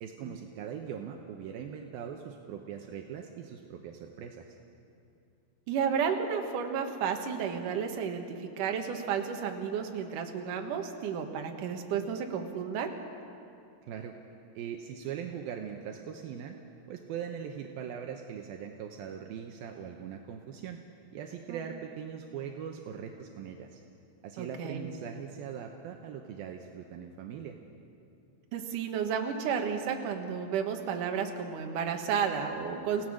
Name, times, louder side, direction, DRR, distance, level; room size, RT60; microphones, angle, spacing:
voice 1, 0.0-4.5 13.8-14.2 14.6-16.6 16.9-20.8 21.1-23.8 24.2-27.6, right 8 dB, 80° right, 3 dB, 2.2 m, -41 dB
voice 2, 5.7-12.9 21.5-21.6 24.4-24.9 28.5-33.1, right 7 dB, 60° right, 4 dB, 2.3 m, -32 dB
30.0 x 17.5 x 6.4 m, 2.5 s
omnidirectional pair, 5.5 m